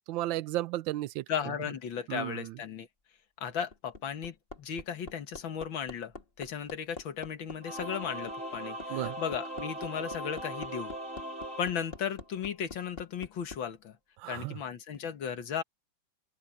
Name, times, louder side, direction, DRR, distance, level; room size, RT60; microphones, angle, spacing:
voice 1, 0.1-1.2 2.1-2.6 8.9-9.2 14.2-14.6, right 15 dB, 85° right, 1.4 m, -34 dB
voice 2, 1.3-2.9 3.4-10.9 11.6-14.0 14.3-15.6, left 8 dB, 90° left, 2.3 m, -36 dB
Hammer, 3.7-13.6 14.9-15.0, left 3 dB, 30° left, 2.1 m, -45 dB
Singing / Musical instrument, 7.6-12.5, right 1 dB, 40° right, 4.4 m, -39 dB
open air
omnidirectional pair, 2.1 m